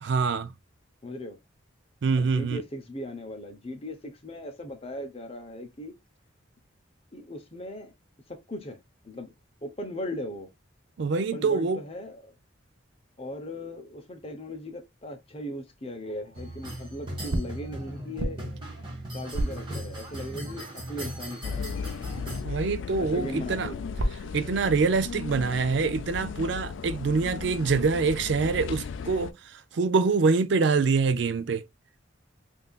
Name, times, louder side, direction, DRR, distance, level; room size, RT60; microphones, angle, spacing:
voice 1, 0.0-0.5 2.0-2.6 11.0-11.8 22.4-23.7 24.3-31.6, right 4 dB, 60° right, 0.4 m, -25 dB
voice 2, 1.0-1.4 2.1-5.9 7.1-7.9 8.3-8.8 9.0-9.3 9.6-10.5 11.2-12.4 13.2-18.5 19.1-21.7 22.9-24.0, left 1 dB, 30° left, 0.8 m, -38 dB
sound 1, 16.0-16.7 17.3-20.5 23.1-24.6, right 1 dB, 85° right, 0.7 m, -35 dB
sound 2, 16.3-22.4, right 1 dB, 25° right, 1.5 m, -38 dB
sound 3, 21.4-29.3, left 6 dB, 70° left, 0.3 m, -36 dB
5.4 x 2.6 x 2.3 m
head